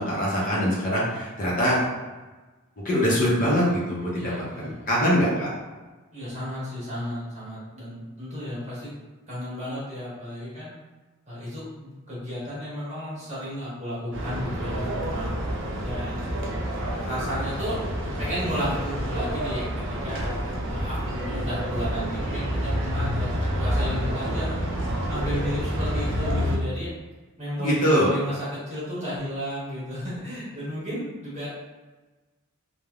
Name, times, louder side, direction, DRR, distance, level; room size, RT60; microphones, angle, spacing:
voice 1, 0.0-1.8 2.8-5.5 27.6-28.1, equal, 40° left, -6 dB, 0.6 m, -23 dB
voice 2, 4.1-4.8 6.1-8.9 9.3-10.7 11.3-15.3 15.8-16.3 16.7-17.8 18.2-20.3 20.7-24.6 25.1-26.9 27.4-31.5, equal, 30° right, -8 dB, 1.2 m, -33 dB
sound 1, 14.1-26.6, equal, 55° right, 0.5 m, -28 dB
3.3 x 2.1 x 2.3 m, 1.2 s
head